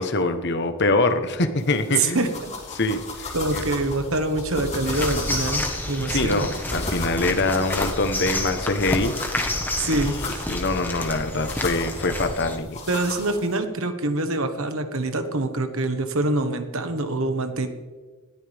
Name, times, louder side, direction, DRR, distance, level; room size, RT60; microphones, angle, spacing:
voice 1, 0.0-2.3 2.7-3.6 6.1-9.1 9.9-12.8, left 2 dB, 50° left, 8 dB, 1.2 m, -24 dB
sound 1, 1.6-13.6, left 2 dB, 30° left, 3.5 m, -36 dB
voice 2, 1.9-2.5 3.3-6.5 9.8-10.5 12.9-17.7, right 2 dB, 65° right, 7 dB, 1.4 m, -25 dB
sound 2, 4.8-12.6, left 1 dB, 10° left, 1.4 m, -29 dB
20.0 x 14.0 x 3.6 m, 1.4 s
head